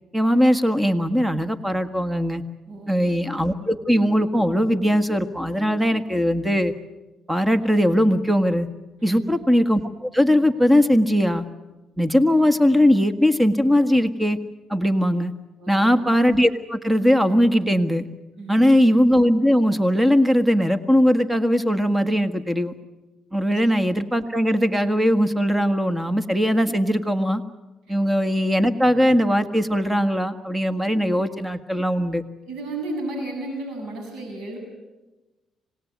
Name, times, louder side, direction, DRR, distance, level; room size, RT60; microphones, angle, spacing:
voice 1, 0.1-2.4 2.9-6.7 7.3-8.7 9.0-11.4 12.0-14.4 14.7-15.3 15.7-18.1 18.5-22.7 23.3-27.4 27.9-32.2, equal, 10° right, 9 dB, 1.7 m, -20 dB
voice 2, 2.7-3.1 9.0-9.3 15.6-16.0 18.4-18.8 23.4-23.5 27.9-28.0 32.4-34.6, right 2 dB, 80° right, 3 dB, 7.4 m, -33 dB
26.0 x 19.0 x 9.5 m, 1.1 s
cardioid pair, 90°, 0 cm